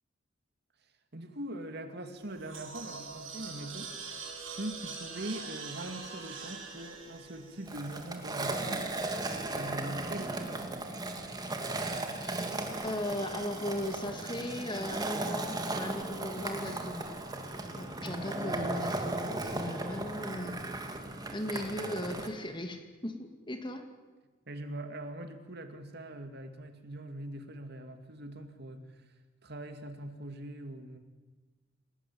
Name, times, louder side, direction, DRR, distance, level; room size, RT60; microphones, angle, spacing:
voice 1, 1.1-8.9 9.5-10.9 24.5-29.1 29.4-31.0, right 1 dB, 55° right, 7 dB, 2.5 m, -42 dB
sound 1, 2.1-8.4, right 5 dB, 80° right, 7.8 m, -44 dB
Skateboard, 7.7-22.3, right 2 dB, 20° right, 2.5 m, -36 dB
voice 2, 12.8-17.1 17.7-20.6 21.3-23.9, left 1 dB, 25° left, 6 dB, 2.4 m, -37 dB
28.5 x 19.0 x 8.9 m, 1.3 s
head